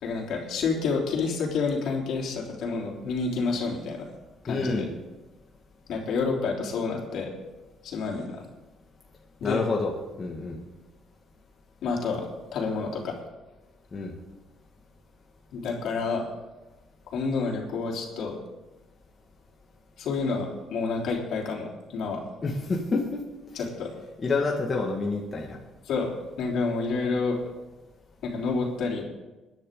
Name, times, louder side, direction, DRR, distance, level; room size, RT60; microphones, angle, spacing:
voice 1, 0.0-4.0 4.4-4.9 5.9-7.3 7.8-8.4 9.4-9.6 11.8-12.2 12.5-13.1 15.5-16.3 17.1-18.3 20.0-22.2 23.5-23.9 25.9-26.1 26.4-27.4 28.2-29.0, left 4 dB, 65° left, -1 dB, 3.5 m, -29 dB
voice 2, 4.5-4.9 9.4-10.6 13.9-14.1 22.4-23.2 24.2-25.6, left 3 dB, 30° left, -1 dB, 1.8 m, -28 dB
21.0 x 10.5 x 3.8 m, 1.1 s
cardioid pair, 130°, 0 cm